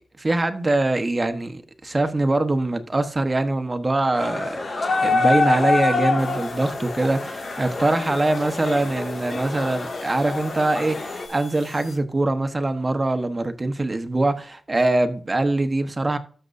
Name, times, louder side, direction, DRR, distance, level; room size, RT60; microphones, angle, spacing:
voice 1, 0.2-4.6 5.0-16.2, right 2 dB, 25° right, 1.1 m, -23 dB
sound 1, 4.1-11.3, left 3 dB, 45° left, 2.1 m, -26 dB
sound 2, 6.2-12.0, left 4 dB, 75° left, 2.7 m, -47 dB
13.5 x 6.8 x 2.6 m
cardioid pair, 80°, 0 cm